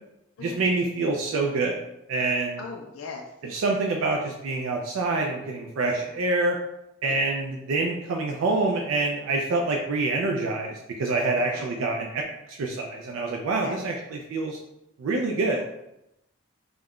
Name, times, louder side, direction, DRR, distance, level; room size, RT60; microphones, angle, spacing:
voice 1, 0.4-1.8 2.1-2.6 3.4-6.6 7.0-12.2 12.5-14.6 15.0-15.6, right 3 dB, 75° right, 1 dB, 0.3 m, -26 dB
voice 2, 2.6-3.3 6.0-6.1 11.4-11.7 13.6-13.8, left 4 dB, 75° left, 1 dB, 0.3 m, -39 dB
2.4 x 2.1 x 3.5 m, 0.86 s
head